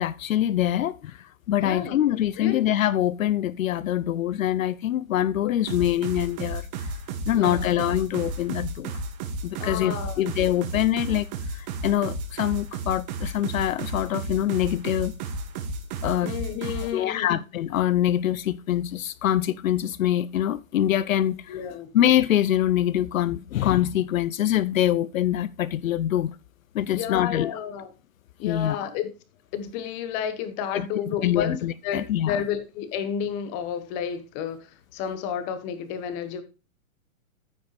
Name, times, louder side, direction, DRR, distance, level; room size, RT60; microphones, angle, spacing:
voice 1, 0.0-6.9 7.3-8.9 9.4-11.3 11.5-15.1 16.0-16.3 16.6-21.6 21.9-26.4 26.7-27.5 28.4-28.9 30.7-30.9 31.2-32.4, left 12 dB, 70° left, 0.6 m, -24 dB
voice 2, 1.6-2.0 2.3-2.6 5.4-5.5 7.3-7.7 9.6-10.3 16.2-17.4 21.5-21.9 26.9-27.9 28.4-29.1 29.5-36.4, left 8 dB, 20° left, 1.1 m, -31 dB
sound 1, 5.7-16.9, right 3 dB, 30° right, 1.8 m, -33 dB
14.5 x 5.1 x 3.2 m
hypercardioid pair, 165°, 42 cm